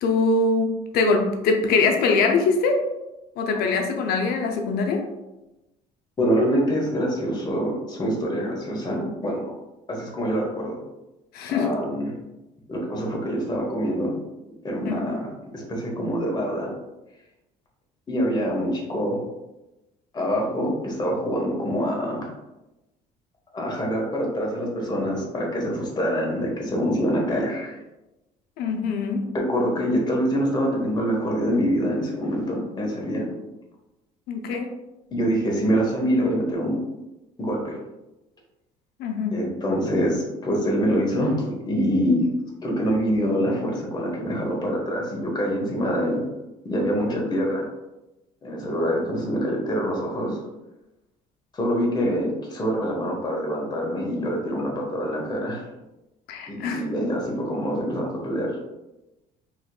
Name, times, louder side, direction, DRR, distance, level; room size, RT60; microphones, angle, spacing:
voice 1, 0.0-2.8 3.4-5.0 11.3-11.7 14.8-15.1 28.6-29.2 34.3-34.7 39.0-39.3 56.3-56.8, left 4 dB, 70° left, 3 dB, 0.7 m, -23 dB
voice 2, 6.2-9.4 9.9-10.8 11.5-12.1 12.7-14.1 14.6-16.7 18.1-19.2 20.1-22.3 23.5-27.8 29.3-33.3 35.1-36.8 37.4-37.8 39.3-42.3 42.6-46.2 46.6-47.7 48.4-50.4 51.5-55.6 56.5-58.6, equal, 25° left, -2 dB, 1.2 m, -25 dB
4.1 x 2.9 x 2.3 m, 1.0 s
supercardioid pair, 95°, 16 cm